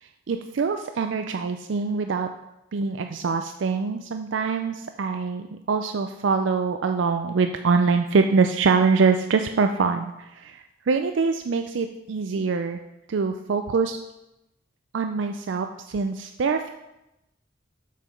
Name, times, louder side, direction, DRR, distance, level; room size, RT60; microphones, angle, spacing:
voice 1, 0.0-2.3 2.7-12.8 13.1-14.0 14.9-16.7, right 4 dB, 90° right, 6 dB, 0.4 m, -24 dB
7.5 x 5.7 x 5.2 m, 0.91 s
head